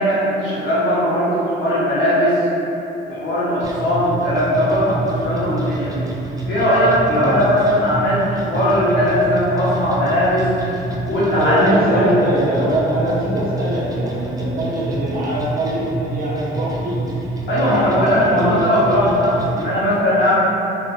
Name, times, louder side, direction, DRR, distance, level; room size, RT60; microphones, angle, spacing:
voice 1, 0.0-2.4 3.1-6.0 6.5-10.5 11.0-12.1 17.5-20.4, equal, 70° left, -8 dB, 1.0 m, -18 dB
sound 1, 3.6-19.6, right 2 dB, 20° right, 0.3 m, -27 dB
voice 2, 7.1-7.4 11.4-17.0 17.6-18.6, right 1 dB, 45° right, -6 dB, 0.7 m, -22 dB
3.0 x 2.5 x 2.4 m, 3.0 s
cardioid pair, 90°, 20 cm